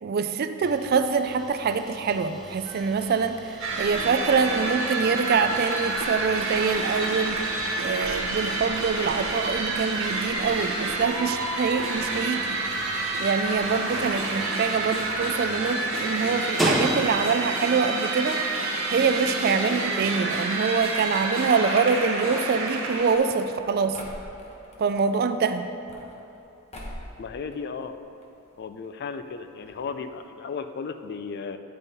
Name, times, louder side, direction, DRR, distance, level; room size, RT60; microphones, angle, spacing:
voice 1, 0.0-12.6 13.2-18.4 18.9-24.0 24.8-25.6, right 5 dB, 45° right, 9 dB, 0.3 m, -25 dB
sound 1, 0.6-17.5, equal, ahead, 0.6 m, -37 dB
sound 2, 3.6-23.2, right 3 dB, 65° right, 1.3 m, -29 dB
sound 3, 21.9-24.8 25.6-26.4 26.7-27.2 27.5-28.3 28.5-28.6 28.8-28.9 29.6-29.7 30.0-30.2, equal, 30° left, 0.9 m, -42 dB
voice 2, 27.2-27.9 28.6-31.6, left 5 dB, 45° left, 9 dB, 0.3 m, -35 dB
9.4 x 5.4 x 4.1 m, 2.9 s
head